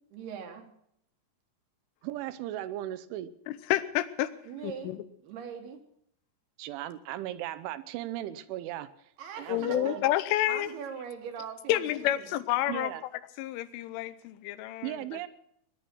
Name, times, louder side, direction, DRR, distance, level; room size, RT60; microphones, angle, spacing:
voice 1, 0.1-0.7 4.5-4.9 5.2-5.8 9.2-10.0 10.4-12.3, right 7 dB, 65° right, 6 dB, 2.9 m, -41 dB
voice 2, 2.0-3.3 6.6-8.9 9.4-10.0 12.7-13.0 14.8-15.3, right 13 dB, 80° right, 14 dB, 3.2 m, -36 dB
voice 3, 3.5-4.3 4.6-5.0 9.5-10.7 11.7-12.9 13.4-15.0, left 14 dB, 85° left, 14 dB, 3.3 m, -29 dB
21.0 x 10.5 x 6.1 m, 0.74 s
omnidirectional pair, 5.6 m